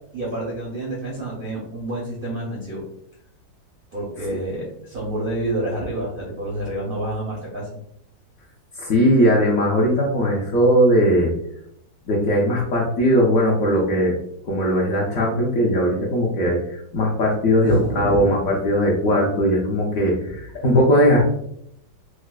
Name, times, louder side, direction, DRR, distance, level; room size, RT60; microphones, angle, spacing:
voice 1, 0.1-2.8 3.9-7.7 17.6-18.4, right 1 dB, 65° right, -5 dB, 0.5 m, -28 dB
voice 2, 8.8-11.3 12.1-14.1 14.5-21.2, equal, 65° left, -3 dB, 0.9 m, -19 dB
4.5 x 2.0 x 2.3 m, 0.72 s
omnidirectional pair, 1.9 m